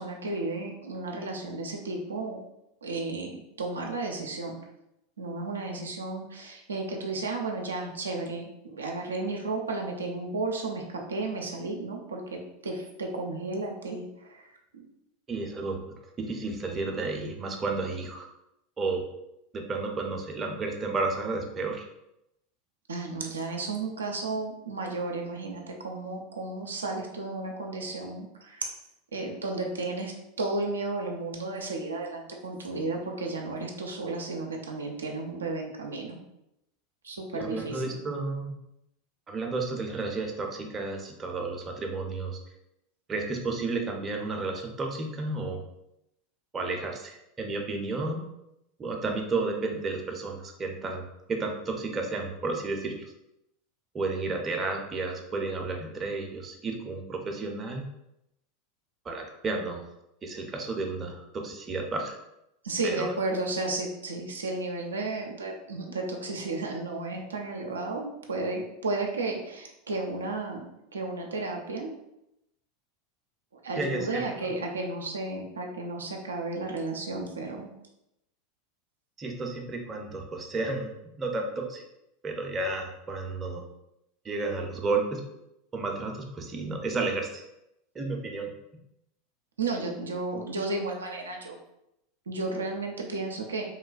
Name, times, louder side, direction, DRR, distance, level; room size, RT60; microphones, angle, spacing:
voice 1, 0.0-2.4 2.8-4.6 5.2-14.8 22.9-28.7 29.1-36.2 37.0-38.0 62.6-71.9 73.5-77.7 89.6-91.6 92.3-93.6, right 3 dB, 85° right, 1 dB, 0.4 m, -33 dB
voice 2, 15.3-15.8 16.2-18.3 18.8-19.0 19.5-21.8 37.3-38.5 39.3-42.4 43.1-45.6 46.5-48.3 48.8-53.1 53.9-57.8 59.0-59.8 60.2-62.2 62.8-63.1 73.8-74.3 79.2-81.8 82.2-83.7 84.2-85.2 85.7-87.4 87.9-88.5, right 3 dB, 25° right, 2 dB, 0.5 m, -32 dB
3.0 x 2.1 x 2.4 m, 0.84 s
hypercardioid pair, 85°, 0 cm